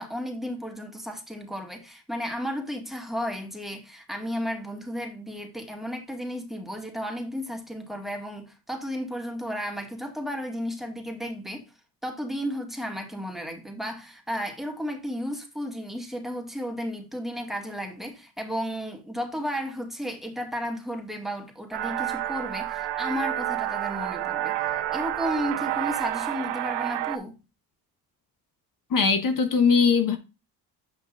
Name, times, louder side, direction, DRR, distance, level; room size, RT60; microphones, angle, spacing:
voice 1, 0.0-11.7 12.0-27.4, equal, ahead, 1.9 m, -33 dB
sound 1, 21.7-27.2, right 14 dB, 75° right, 0.9 m, -29 dB
voice 2, 28.9-30.2, left 5 dB, 50° left, 1.2 m, -20 dB
8.1 x 5.8 x 2.5 m
cardioid pair, 85°, 41 cm